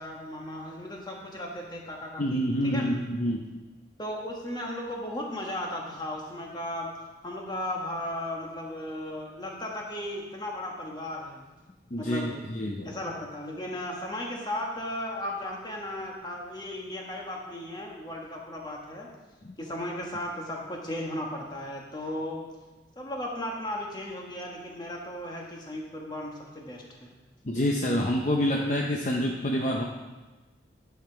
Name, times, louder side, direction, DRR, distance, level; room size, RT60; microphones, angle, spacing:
voice 1, 0.0-2.9 4.0-6.9 7.2-11.4 12.0-12.4 12.8-19.1 19.6-22.4 23.0-27.2, left 1 dB, 25° left, -1 dB, 1.4 m, -36 dB
voice 2, 2.2-3.4 11.9-12.9 27.4-29.8, equal, 40° left, 0 dB, 0.7 m, -27 dB
10.5 x 5.8 x 4.6 m, 1.2 s
head